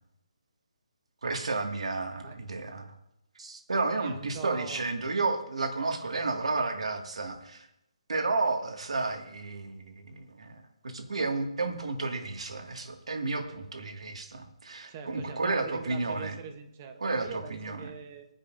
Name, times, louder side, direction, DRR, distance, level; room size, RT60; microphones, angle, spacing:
voice 1, 1.2-2.9 3.4-7.7 8.1-16.4 17.0-17.9, right 3 dB, 75° right, 3 dB, 2.0 m, -32 dB
voice 2, 4.0-4.8 14.9-18.3, right 6 dB, 20° right, 7 dB, 0.9 m, -42 dB
24.5 x 10.0 x 2.6 m, 0.81 s
hypercardioid pair, 175°, 3 cm